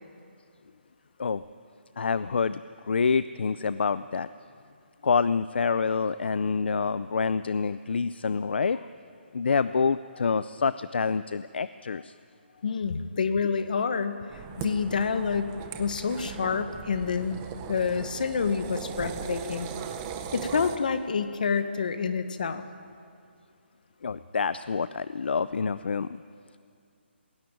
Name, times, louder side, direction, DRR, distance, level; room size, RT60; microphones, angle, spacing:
voice 1, 2.0-2.6 2.9-4.3 5.0-8.9 9.3-12.1 24.0-26.1, left 5 dB, 60° left, 15 dB, 0.5 m, -27 dB
voice 2, 12.6-14.2 14.6-15.5 15.8-17.4 17.7-19.7 20.3-22.6, left 5 dB, 45° left, 10 dB, 1.3 m, -28 dB
sound 1, 14.3-20.8, right 7 dB, 15° right, 0.7 m, -38 dB
20.5 x 17.5 x 9.1 m, 2.4 s
hypercardioid pair, 175°, 6 cm